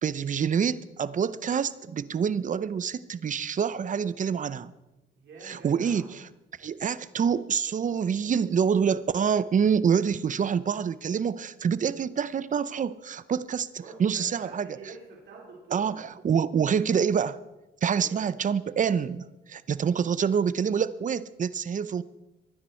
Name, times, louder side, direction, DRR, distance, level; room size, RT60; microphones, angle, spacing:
voice 1, 0.0-4.7 5.4-6.2 6.6-14.7 15.7-17.4 17.8-22.0, right 7 dB, 40° right, 16 dB, 0.7 m, -26 dB
voice 2, 5.2-6.1 13.8-16.0 17.9-18.1, right 4 dB, 70° right, -3 dB, 4.4 m, -46 dB
23.5 x 10.0 x 4.5 m, 1.0 s
cardioid pair, 90°, 20 cm